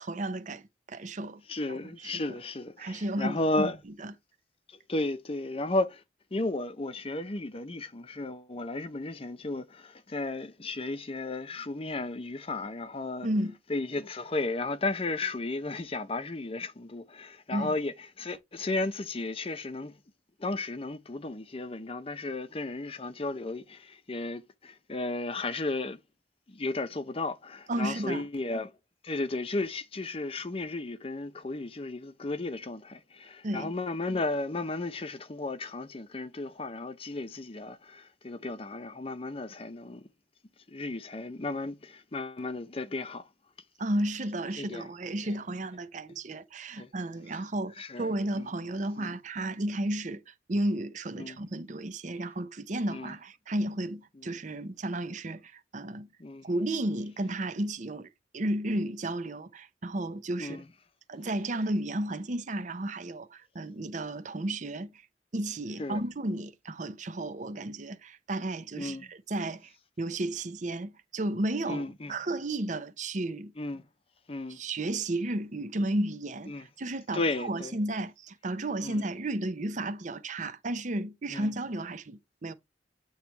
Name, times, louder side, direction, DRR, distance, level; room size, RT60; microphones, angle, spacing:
voice 1, 0.0-1.4 2.1-2.2 2.8-3.7 4.0-4.1 13.2-13.6 17.5-17.7 27.7-28.3 33.4-33.7 43.8-56.1 56.4-58.1 58.3-60.6 61.1-65.0 65.3-69.7 70.0-71.8 72.1-73.5 74.5-82.5, right 1 dB, 45° right, 0.7 m, -33 dB
voice 2, 1.5-3.8 4.7-6.0 6.3-13.3 13.7-20.0 20.4-26.0 26.5-28.7 29.0-40.1 40.7-43.3 44.6-44.9 45.2-45.3 46.8-46.9 47.8-48.5 49.0-49.1 51.2-51.4 52.9-53.1 56.2-56.5 60.4-60.7 65.8-66.0 68.8-69.1 71.7-72.1 73.6-73.8 74.3-74.6 76.5-76.7 77.1-77.7 78.8-79.0 81.3-81.5, left 2 dB, 30° left, 0.6 m, -34 dB
8.4 x 3.1 x 4.4 m
head